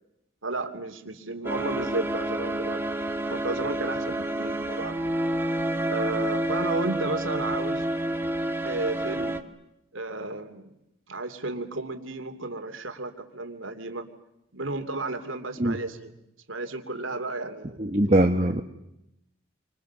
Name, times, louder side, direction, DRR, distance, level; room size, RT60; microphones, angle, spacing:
voice 1, 0.4-2.8 3.3-5.0 5.9-7.9 8.6-9.4 9.9-10.7 11.1-14.0 14.5-16.1 16.5-17.9 18.1-18.3, right 2 dB, 85° right, 7 dB, 2.8 m, -33 dB
sound 1, 1.4-9.4, right 1 dB, 10° right, 1.4 m, -29 dB
voice 2, 17.8-18.6, right 1 dB, 35° right, 3 dB, 1.3 m, -21 dB
29.0 x 25.5 x 6.9 m, 0.85 s
head